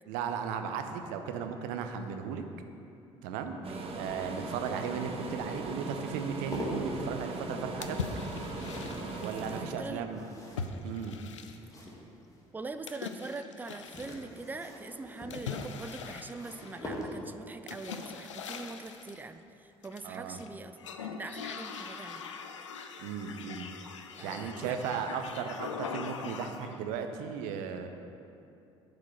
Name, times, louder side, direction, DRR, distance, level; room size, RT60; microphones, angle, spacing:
voice 1, 0.1-2.4 3.2-3.6 4.0-8.0 9.2-10.3 10.8-11.2 20.0-20.4 23.0-23.7 24.2-27.9, right 6 dB, 60° right, 6 dB, 0.6 m, -36 dB
sound 1, 3.6-12.5 13.6-17.5 19.1-19.4 19.7-19.8, equal, 20° left, 1.8 m, -45 dB
voice 2, 3.6-3.9 9.5-10.1 12.5-22.2 24.2-24.8, right 3 dB, 10° right, 10 dB, 0.4 m, -43 dB
sound 2, 3.6-9.6, right 3 dB, 40° right, 1.0 m, -39 dB
sound 3, 7.8-9.6 10.6-11.9 12.9-14.2 15.3-17.0 17.7-19.2 19.8-20.5 20.8-26.8, left 5 dB, 80° left, 0.4 m, -41 dB
7.5 x 4.9 x 5.9 m, 2.7 s
figure-of-eight pair, 50°, 15 cm